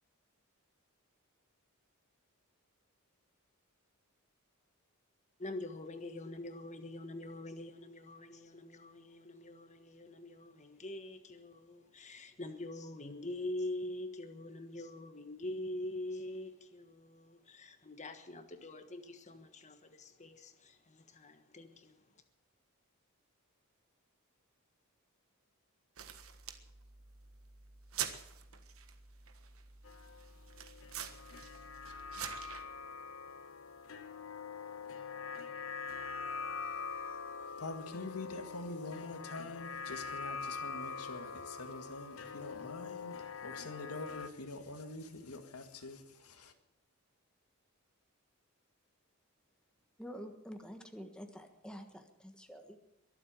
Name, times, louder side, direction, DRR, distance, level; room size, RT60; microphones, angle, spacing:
voice 1, 5.4-22.0, left 1 dB, 30° left, 7 dB, 1.4 m, -44 dB
sound 1, 26.0-32.6, right 9 dB, 65° right, 1.5 m, -46 dB
sound 2, 29.8-44.3, left 5 dB, 65° left, 1.2 m, -44 dB
voice 2, 37.6-43.2 43.4-46.5, left 2 dB, 85° left, 6 dB, 1.9 m, -45 dB
voice 3, 50.0-52.8, equal, 5° left, 5 dB, 1.4 m, -48 dB
22.5 x 8.1 x 7.6 m, 0.88 s
head